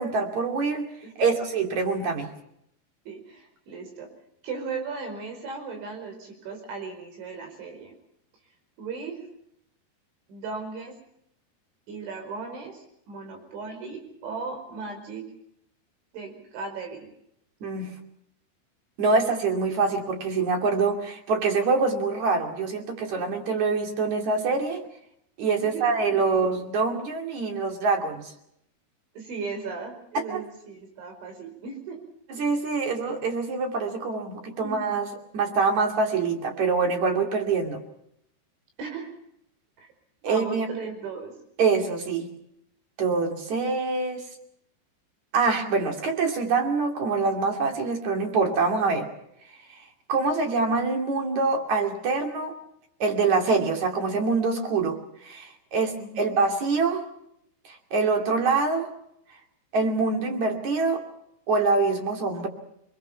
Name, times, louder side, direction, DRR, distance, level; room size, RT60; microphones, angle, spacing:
voice 1, 0.0-0.9 1.2-2.3 17.6-17.9 19.0-24.8 25.4-28.3 30.2-30.4 32.3-35.1 35.3-37.8 40.2-40.7 41.6-42.3 43.0-44.2 45.3-49.1 50.1-52.6 53.0-57.0 57.7-58.9 59.7-61.0 61.5-62.5, right 4 dB, 45° right, 3 dB, 3.5 m, -25 dB
voice 2, 1.0-1.4 3.1-4.1 4.4-7.9 8.8-9.2 10.3-11.0 11.9-15.2 16.1-17.1 25.6-26.5 29.2-32.0 34.6-34.9 38.8-39.1 39.8-39.9 40.2-41.3 56.0-56.3, right 4 dB, 80° right, 5 dB, 7.5 m, -37 dB
26.0 x 21.5 x 5.8 m, 0.75 s
omnidirectional pair, 5.3 m